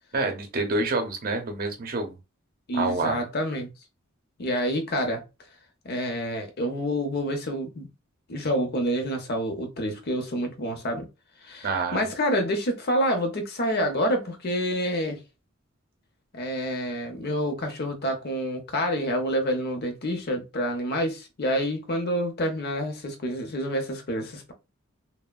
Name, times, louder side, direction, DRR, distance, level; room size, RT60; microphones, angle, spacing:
voice 1, 0.1-2.2 2.7-3.2 11.6-12.1, right 2 dB, 45° right, 0.7 m, -27 dB
voice 2, 2.7-3.7 4.4-5.2 5.8-7.9 8.3-11.1 11.4-15.2 16.3-24.5, equal, 50° left, 0.7 m, -28 dB
3.3 x 2.1 x 2.2 m
head